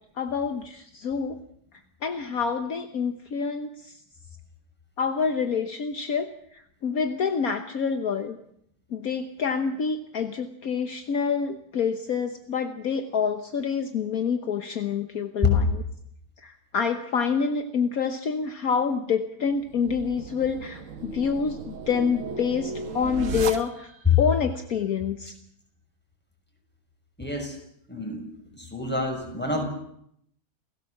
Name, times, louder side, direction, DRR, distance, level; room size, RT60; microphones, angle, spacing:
voice 1, 0.2-1.4 2.0-3.7 5.0-6.3 6.8-8.4 8.9-15.7 16.4-23.9 24.2-25.3, left 6 dB, 60° left, 8 dB, 1.6 m, -27 dB
sound 1, 19.6-24.1, right 4 dB, 55° right, 1.4 m, -36 dB
voice 2, 27.2-27.6 27.9-28.2 28.5-29.7, left 5 dB, 5° left, 3 dB, 6.4 m, -25 dB
29.0 x 17.0 x 7.2 m, 0.73 s
omnidirectional pair, 1.8 m